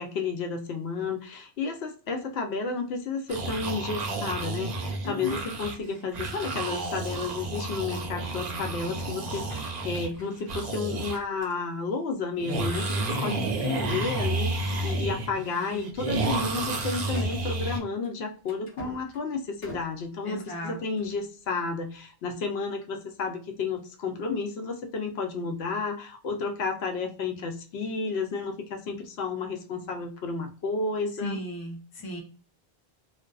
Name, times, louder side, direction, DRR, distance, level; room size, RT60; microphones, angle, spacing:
voice 1, 0.0-31.4, left 4 dB, 85° left, 4 dB, 0.8 m, -32 dB
sound 1, 3.3-11.2 11.4-11.5 12.4-17.8, right 2 dB, 50° right, 0.6 m, -31 dB
voice 2, 5.0-5.4 13.2-13.5 20.2-20.8 31.2-32.2, left 1 dB, 25° left, 0 dB, 0.6 m, -35 dB
sound 2, 9.3-12.0 12.5-12.9 13.4-13.5 13.9-14.1 14.8-15.0 15.4-21.2, left 1 dB, 45° left, 1.0 m, -50 dB
2.4 x 2.2 x 2.2 m, 0.36 s
omnidirectional pair, 1.0 m